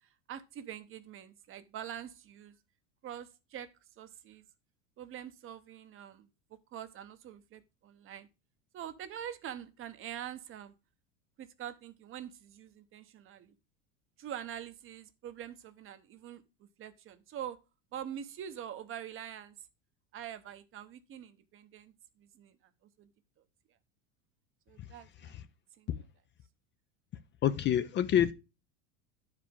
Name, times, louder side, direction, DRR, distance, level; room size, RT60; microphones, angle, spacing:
voice 1, 0.0-2.5 3.0-3.7 4.0-4.4 5.0-6.3 6.7-8.3 8.7-10.7 11.4-13.5 14.2-17.6 17.9-19.6 20.1-22.6 23.0-23.1 24.7-25.3 25.8-25.9, right 10 dB, 35° right, 0.8 m, -45 dB
voice 2, 27.4-28.3, left 10 dB, 30° left, 0.5 m, -28 dB
11.0 x 5.0 x 3.6 m
supercardioid pair, 115°, 35 cm